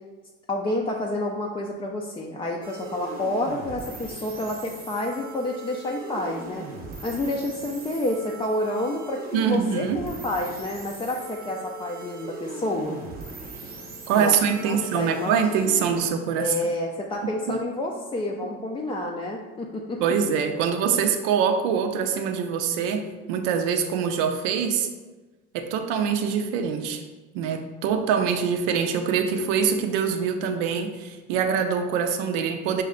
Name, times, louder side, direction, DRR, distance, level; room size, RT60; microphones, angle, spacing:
voice 1, 0.5-6.6 7.0-13.0 14.1-14.4 14.6-15.3 16.4-20.0, left 1 dB, 15° left, -1 dB, 0.3 m, -29 dB
sound 1, 2.6-16.1, right 2 dB, 30° right, 0.8 m, -39 dB
voice 2, 9.3-10.0 14.1-16.5 17.5-17.6 20.0-24.9 25.5-27.0 27.3-32.8, right 7 dB, 90° right, 6 dB, 0.6 m, -24 dB
6.1 x 2.2 x 3.7 m, 1.2 s
cardioid pair, 110°, 32 cm